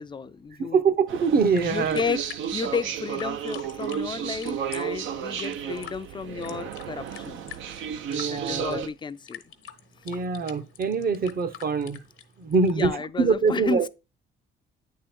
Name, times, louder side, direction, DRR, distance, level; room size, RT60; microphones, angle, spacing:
voice 1, 0.0-0.8 1.7-2.2 2.5-7.5 8.2-9.4 12.6-13.9, left 5 dB, 25° left, 0.4 m, -32 dB
voice 2, 0.6-2.0 8.1-8.8 10.0-12.0 12.4-13.9, right 5 dB, 50° right, 0.9 m, -24 dB
sound 1, 1.1-8.9, right 8 dB, 80° right, 0.7 m, -33 dB
sound 2, 1.2-12.8, left 10 dB, 75° left, 1.0 m, -47 dB
8.8 x 3.8 x 4.3 m
cardioid pair, 90°, 20 cm